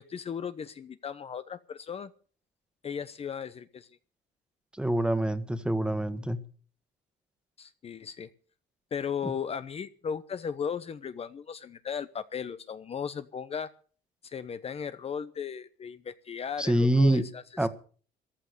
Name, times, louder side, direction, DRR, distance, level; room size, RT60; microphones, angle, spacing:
voice 1, 0.0-2.1 2.8-3.9 7.6-8.3 8.9-13.7 14.2-17.7, left 7 dB, 35° left, 0.9 m, -36 dB
voice 2, 4.8-6.4 9.2-9.3 16.6-17.2 17.6-17.7, right 1 dB, 5° right, 1.6 m, -25 dB
14.5 x 12.0 x 6.8 m
cardioid pair, 110°, 17 cm